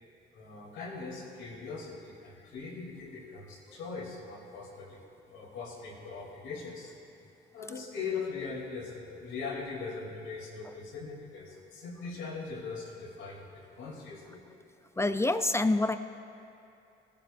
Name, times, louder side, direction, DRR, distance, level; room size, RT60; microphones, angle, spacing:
voice 1, 0.3-6.9 7.5-14.4, left 4 dB, 85° left, -3 dB, 2.9 m, -40 dB
voice 2, 15.0-16.0, left 2 dB, 15° left, 10 dB, 0.4 m, -26 dB
19.0 x 12.0 x 2.5 m, 2.7 s
cardioid pair, 95°, 19 cm